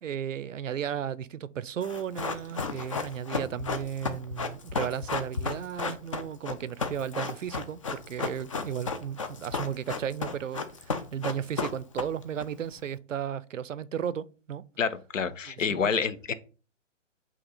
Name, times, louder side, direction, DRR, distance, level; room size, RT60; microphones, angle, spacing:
voice 1, 0.0-14.6 15.7-15.9, right 9 dB, 75° right, 0.6 m, -34 dB
Run, 1.8-12.4 12.7-12.8, left 4 dB, 25° left, 0.4 m, -33 dB
voice 2, 14.8-16.3, left 6 dB, 75° left, 0.8 m, -28 dB
8.0 x 2.9 x 4.1 m
figure-of-eight pair, 135°, 38 cm